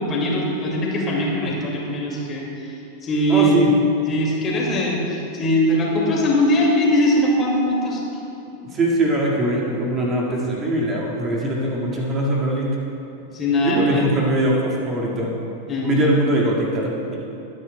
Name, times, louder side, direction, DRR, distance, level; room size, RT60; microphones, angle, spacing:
voice 1, 0.0-2.7 3.0-3.5 4.1-8.0 13.2-14.0 15.7-16.0, equal, 25° left, -2 dB, 2.3 m, -21 dB
voice 2, 3.3-3.7 8.6-12.8 13.6-15.3 15.8-17.2, right 1 dB, 25° right, -3 dB, 2.0 m, -22 dB
22.5 x 9.6 x 2.3 m, 2.9 s
figure-of-eight pair, 90°, 0 cm